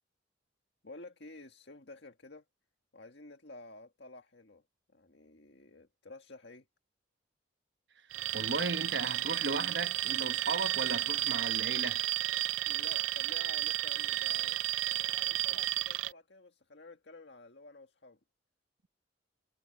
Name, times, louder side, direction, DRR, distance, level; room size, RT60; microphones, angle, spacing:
voice 1, 0.8-2.5 2.9-6.7 12.7-18.2, left 2 dB, 65° left, 1.8 m, -51 dB
Alarm, 8.1-16.1, right 15 dB, 90° right, 0.4 m, -32 dB
voice 2, 8.3-12.0, right 3 dB, 65° right, 1.2 m, -35 dB
head